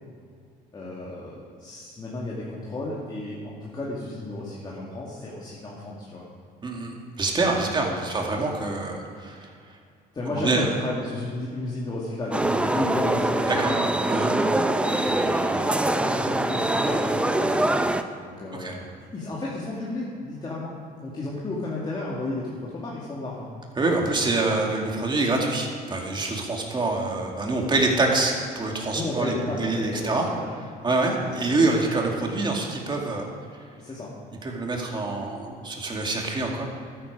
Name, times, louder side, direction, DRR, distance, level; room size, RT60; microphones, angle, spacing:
voice 1, 0.7-6.3 7.6-8.2 10.1-13.8 14.8-17.7 18.2-23.5 23.9-24.0 28.8-30.6 31.2-31.5 33.8-34.1, left 2 dB, 25° left, -6 dB, 2.2 m, -33 dB
voice 2, 6.6-9.5 10.3-10.7 13.5-13.7 14.1-14.3 18.6-18.7 23.8-30.3 30.8-33.3 34.4-36.6, right 2 dB, 25° right, 0 dB, 2.3 m, -25 dB
sound 1, 12.3-18.0, right 1 dB, 5° right, 0.6 m, -23 dB
13.0 x 10.0 x 4.9 m, 2.2 s
cardioid pair, 110°, 17 cm